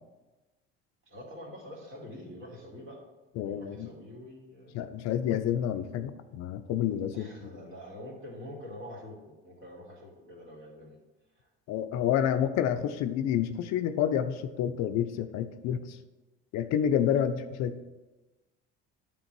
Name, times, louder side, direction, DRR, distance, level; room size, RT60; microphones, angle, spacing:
voice 1, 1.1-3.0 3.4-4.9 7.1-11.0 11.4-11.5, left 1 dB, 40° right, -2 dB, 2.4 m, -46 dB
voice 2, 3.4-3.9 4.7-7.5 11.7-16.0 16.5-17.7, left 9 dB, 65° left, 9 dB, 0.6 m, -29 dB
8.9 x 3.7 x 4.6 m, 1.1 s
hypercardioid pair, 70°, 29 cm